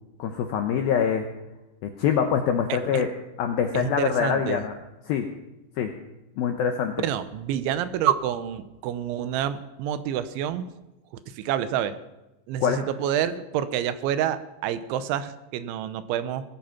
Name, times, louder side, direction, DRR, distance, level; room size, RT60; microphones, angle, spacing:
voice 1, 0.2-1.3 1.8-3.1 3.4-4.8 5.1-5.3 5.8-5.9 6.4-7.0 12.6-12.8, left 7 dB, 80° left, 5 dB, 2.2 m, -24 dB
voice 2, 3.7-4.6 7.0-10.7 11.4-12.0 12.5-16.4, right 10 dB, 80° right, 12 dB, 3.2 m, -28 dB
19.5 x 12.5 x 5.8 m, 1.0 s
omnidirectional pair, 5.5 m